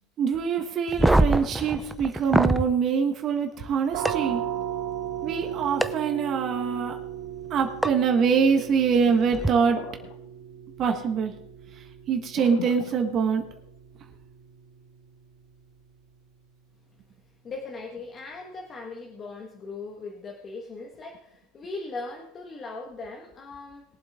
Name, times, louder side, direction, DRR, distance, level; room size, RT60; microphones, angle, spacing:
voice 1, 0.2-4.4 5.2-7.0 7.5-9.8 10.8-11.3 12.1-13.5, right 6 dB, 40° right, 4 dB, 1.6 m, -24 dB
sound 1, 0.9-2.7 4.1-4.2 5.8-5.9 7.8-7.9 9.3-9.5, right 1 dB, 5° right, 0.6 m, -22 dB
sound 2, 3.9-15.4, right 10 dB, 70° right, 2.3 m, -37 dB
sound 3, 9.4-10.7 12.3-13.7, left 7 dB, 70° left, 1.4 m, -40 dB
voice 2, 17.4-23.8, left 3 dB, 30° left, 1 dB, 1.7 m, -39 dB
21.0 x 7.8 x 3.7 m, 0.83 s
supercardioid pair, 125°, 0 cm